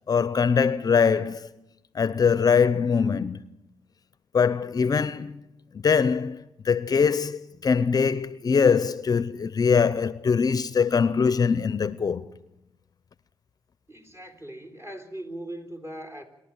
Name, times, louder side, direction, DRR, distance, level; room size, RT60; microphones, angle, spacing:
voice 1, 0.1-1.5 1.9-3.4 4.3-5.4 5.7-12.3, left 6 dB, 45° left, 0.7 m, -22 dB
voice 2, 13.9-16.2, right 1 dB, 30° right, 3.8 m, -39 dB
27.0 x 11.5 x 8.8 m
cardioid pair, 90°, 9 cm